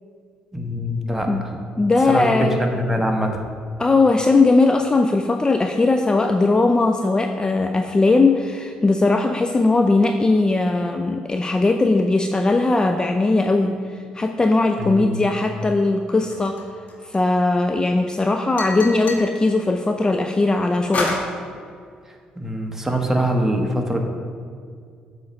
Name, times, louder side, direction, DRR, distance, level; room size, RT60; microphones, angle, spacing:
voice 1, 0.5-1.6 2.1-3.4 14.8-15.2 22.4-24.0, right 1 dB, 10° right, 2 dB, 1.1 m, -23 dB
voice 2, 1.8-2.8 3.8-16.6 17.0-21.2, left 3 dB, 20° left, 5 dB, 0.4 m, -19 dB
sound 1, 16.3-17.5 18.6-19.3 20.9-21.3, left 2 dB, 45° left, 1.2 m, -27 dB
7.8 x 3.2 x 5.2 m, 2.2 s
hypercardioid pair, 55°, 4 cm